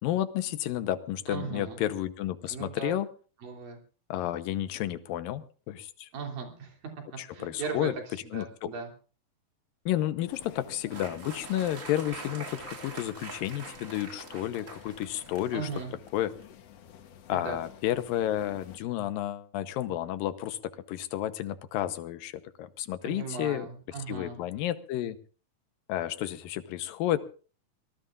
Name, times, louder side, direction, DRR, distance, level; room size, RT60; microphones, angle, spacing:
voice 1, 0.0-3.1 4.1-6.1 7.2-7.9 8.3-8.7 9.9-15.7 16.1-16.3 17.3-23.7 24.1-25.2 25.9-27.2, left 13 dB, 90° left, 11 dB, 2.6 m, -31 dB
voice 2, 1.3-1.8 2.5-3.0 3.4-3.8 6.1-6.8 7.3-7.9 8.2-8.9 15.5-15.9 17.3-17.6 23.0-24.4, right 5 dB, 80° right, 3 dB, 4.7 m, -37 dB
sound 1, 10.3-18.8, left 10 dB, 65° left, 1.7 m, -52 dB
sound 2, 10.8-16.4, right 4 dB, 35° right, 1.3 m, -45 dB
24.0 x 18.5 x 2.5 m, 0.39 s
omnidirectional pair, 4.0 m